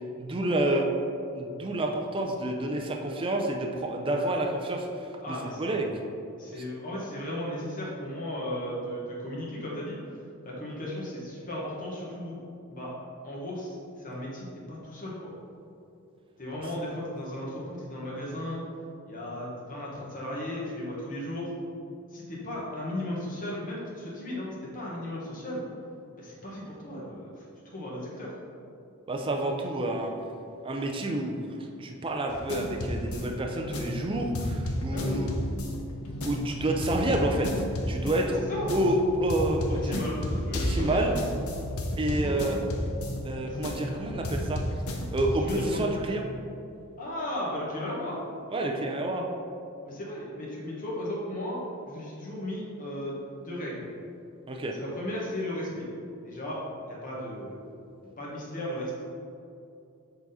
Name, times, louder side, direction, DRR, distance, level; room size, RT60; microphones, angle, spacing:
voice 1, 0.2-0.9 1.3-5.9 29.1-30.1 30.6-35.3 36.2-38.4 38.7-39.8 40.5-41.1 42.0-42.6 43.2-44.6 45.1-46.3 48.5-49.3 54.5-54.7, right 1 dB, 25° right, 1 dB, 0.5 m, -29 dB
voice 2, 5.2-6.0 6.4-10.0 10.4-12.4 12.7-12.9 13.2-15.3 16.4-18.6 19.1-21.5 22.1-25.6 26.2-28.3 34.9-35.2 38.2-38.7 39.7-41.1 42.2-42.6 43.4-43.6 45.4-45.8 47.0-48.2 49.8-51.6 51.9-53.9 54.8-55.9 56.2-56.6 56.9-57.6 58.2-59.0, left 1 dB, 40° left, -6 dB, 1.3 m, -35 dB
sound 1, 32.3-46.0, equal, 80° left, 0.8 m, -33 dB
7.1 x 4.0 x 4.1 m, 2.6 s
head